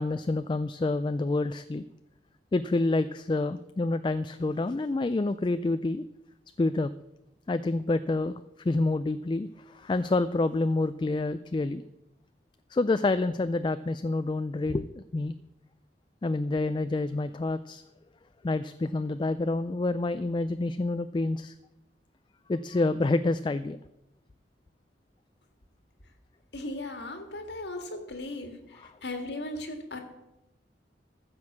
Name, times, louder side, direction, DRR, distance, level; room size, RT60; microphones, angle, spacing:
voice 1, 0.0-1.8 2.5-6.0 6.6-6.9 7.5-11.8 12.7-15.3 16.2-17.8 18.4-21.5 22.5-23.8 28.8-28.9, left 2 dB, 25° left, 12 dB, 0.3 m, -28 dB
voice 2, 26.5-30.0, left 2 dB, 70° left, 5 dB, 1.9 m, -37 dB
14.5 x 6.3 x 7.2 m, 0.91 s
head